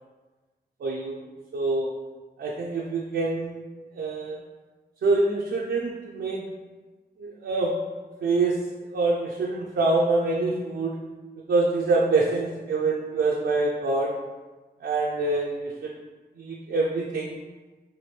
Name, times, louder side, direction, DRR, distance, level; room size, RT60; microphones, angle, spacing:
voice 1, 0.8-1.2 1.5-2.0 2.4-3.6 3.9-4.4 5.0-6.5 7.2-7.9 8.2-11.0 11.4-14.2 14.8-15.9 16.4-17.4, right 3 dB, 85° right, -3 dB, 0.5 m, -25 dB
5.7 x 2.6 x 3.2 m, 1.3 s
cardioid pair, 65°, 18 cm